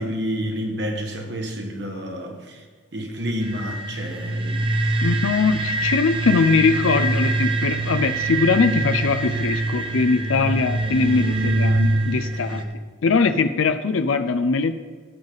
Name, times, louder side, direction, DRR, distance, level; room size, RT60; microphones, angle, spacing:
voice 1, 0.0-2.6 2.9-4.7 12.5-12.6, equal, 55° right, 2 dB, 1.5 m, -29 dB
sound 1, 3.4-12.6, right 2 dB, 25° right, 0.8 m, -24 dB
voice 2, 5.0-12.6 13.0-14.7, left 4 dB, 80° left, 10 dB, 0.5 m, -21 dB
15.5 x 7.2 x 4.0 m, 1.5 s
head